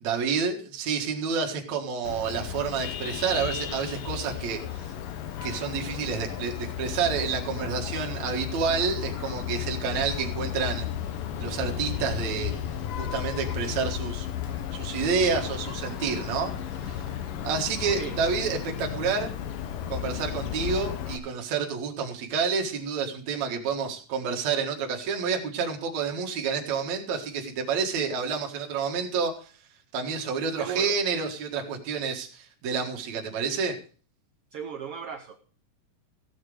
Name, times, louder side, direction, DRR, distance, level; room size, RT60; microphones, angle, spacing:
voice 1, 0.0-4.9 5.4-10.9 11.4-12.5 13.0-14.3 14.7-16.5 16.8-17.0 17.4-19.3 19.9-29.5 29.9-33.8, right 5 dB, 60° right, 1 dB, 2.9 m, -29 dB
Vehicle horn car horn honking, 2.0-21.2, left 10 dB, 80° left, 2.8 m, -34 dB
voice 2, 30.6-30.9 34.5-35.4, right 7 dB, 85° right, 6 dB, 1.2 m, -36 dB
15.5 x 8.2 x 5.0 m, 0.41 s
omnidirectional pair, 3.9 m